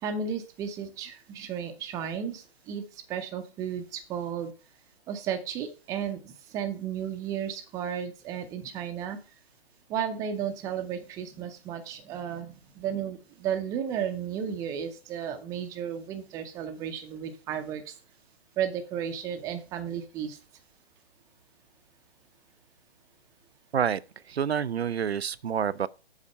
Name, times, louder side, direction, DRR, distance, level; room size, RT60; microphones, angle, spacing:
voice 1, 0.0-4.5 5.1-9.2 9.9-17.9 18.6-20.4, right 8 dB, 10° right, 0.6 m, -33 dB
voice 2, 24.3-25.9, right 8 dB, 90° right, 0.5 m, -28 dB
7.4 x 4.3 x 6.4 m
figure-of-eight pair, 140°, 31 cm